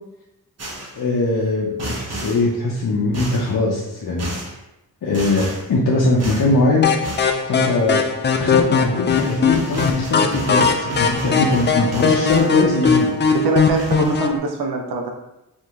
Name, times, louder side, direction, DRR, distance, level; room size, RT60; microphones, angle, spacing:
sound 1, 0.6-1.0 1.8-2.5 3.1-3.5 4.2-4.6 5.1-5.7 6.2-6.5 7.0-7.4 8.8-8.9 9.1-12.6 12.8-13.5 13.8-14.2, right 2 dB, 40° right, 0.9 m, -32 dB
voice 1, 1.0-4.5 5.0-6.9 7.4-8.0 8.4-13.1, left 2 dB, 60° left, -4 dB, 0.7 m, -21 dB
sound 2, 6.8-14.4, left 5 dB, 30° left, 0.4 m, -19 dB
voice 2, 13.3-15.1, right 3 dB, 80° right, 2 dB, 0.6 m, -23 dB
2.7 x 2.6 x 3.5 m, 0.92 s
cardioid pair, 55°, 38 cm